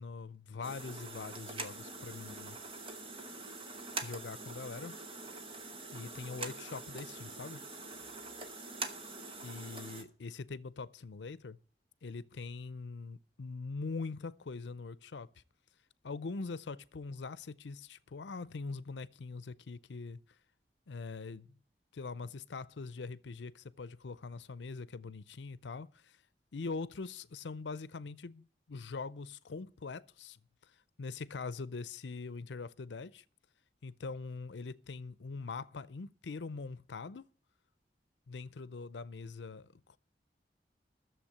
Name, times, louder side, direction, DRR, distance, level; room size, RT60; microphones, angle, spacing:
voice 1, 0.0-2.6 4.0-4.9 5.9-7.6 9.4-11.6 12.0-15.3 16.0-20.2 20.9-21.5 21.9-26.2 26.5-30.7 31.0-33.2 33.8-37.3 38.3-40.0, left 4 dB, 90° left, 0.6 m, -43 dB
sound 1, 0.6-10.0, right 3 dB, 30° right, 1.4 m, -44 dB
11.5 x 7.1 x 8.5 m
head